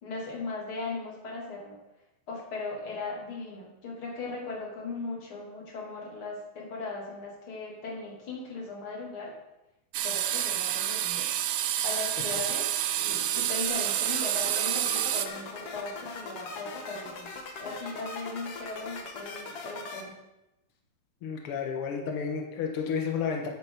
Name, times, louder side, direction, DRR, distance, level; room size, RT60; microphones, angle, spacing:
voice 1, 0.0-1.8 2.3-9.3 10.0-11.3 11.8-17.3 17.6-20.1, left 3 dB, 35° left, -3 dB, 3.3 m, -38 dB
sound 1, 9.9-15.3, right 12 dB, 85° right, 2.7 m, -28 dB
sound 2, 13.7-20.0, left 3 dB, 60° left, 1.6 m, -41 dB
voice 2, 21.2-23.5, left 6 dB, 80° left, 1 dB, 1.2 m, -31 dB
15.0 x 9.1 x 4.1 m, 0.95 s
omnidirectional pair, 4.5 m